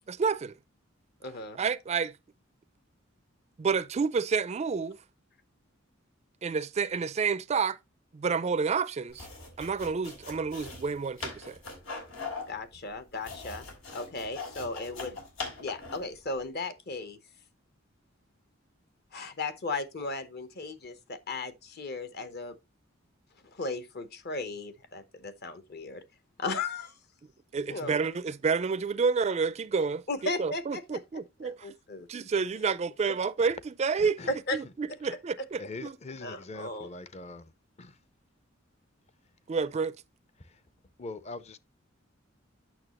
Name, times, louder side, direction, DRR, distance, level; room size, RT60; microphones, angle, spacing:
voice 1, 0.1-0.5 1.5-2.2 3.6-5.0 6.4-7.8 8.1-9.3 9.6-11.6 27.5-30.0 30.4-31.7 32.1-34.2 34.5-36.0 39.5-40.0, right 5 dB, 35° right, 0.4 m, -29 dB
voice 2, 1.2-1.6 12.5-13.7 13.9-15.2 15.6-17.2 19.1-22.5 23.5-26.0 26.4-27.0 27.7-28.0 30.1-31.0 31.4-32.1 34.3-34.6 35.1-35.2 36.2-36.9, left 3 dB, 55° left, 0.9 m, -36 dB
sound 1, 9.1-16.2, left 4 dB, 85° left, 3.0 m, -41 dB
voice 3, 34.0-34.3 35.6-37.5 37.8-37.9 40.4-40.6 41.0-41.6, left 3 dB, 35° left, 0.6 m, -42 dB
8.9 x 6.3 x 3.0 m
head